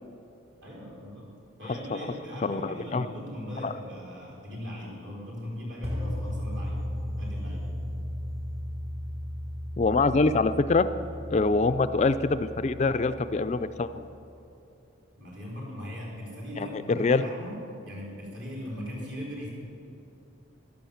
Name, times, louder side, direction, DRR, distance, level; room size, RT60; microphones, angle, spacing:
voice 1, 0.6-1.3 1.6-6.8 7.2-7.8 15.2-17.6 17.8-19.5, equal, 60° right, -4 dB, 4.5 m, -39 dB
voice 2, 2.4-3.0 3.6-3.7 9.8-10.9 11.3-14.1 16.6-17.2, left 3 dB, 35° left, 11 dB, 0.4 m, -25 dB
sound 1, 5.8-14.0, equal, 30° right, 2.6 m, -35 dB
14.5 x 11.5 x 7.2 m, 2.8 s
head